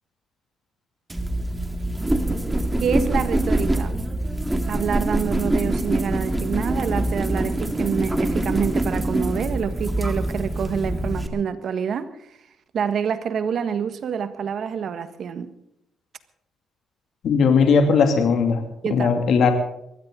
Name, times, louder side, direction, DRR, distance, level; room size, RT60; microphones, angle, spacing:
sound 1, 1.1-11.3, right 1 dB, 10° right, 2.1 m, -24 dB
voice 1, 2.8-4.0 4.7-12.1 12.7-15.5 18.8-19.1, right 7 dB, 60° right, 11 dB, 1.5 m, -27 dB
voice 2, 17.2-18.6 18.9-19.5, left 5 dB, 65° left, 5 dB, 2.5 m, -18 dB
22.0 x 16.0 x 3.9 m, 0.78 s
cardioid pair, 90°, 0 cm